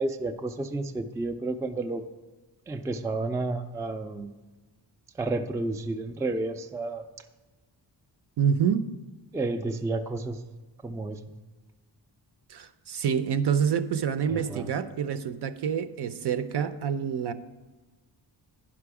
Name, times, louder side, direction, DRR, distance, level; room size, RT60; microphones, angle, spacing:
voice 1, 0.0-2.0 2.7-4.3 5.2-7.0 9.3-10.4 10.8-11.2 14.3-14.7, right 2 dB, 10° right, 6 dB, 0.3 m, -31 dB
voice 2, 8.4-8.9 12.5-17.3, right 7 dB, 65° right, 12 dB, 0.6 m, -27 dB
10.5 x 6.0 x 4.8 m, 1.2 s
wide cardioid pair, 135°, 44 cm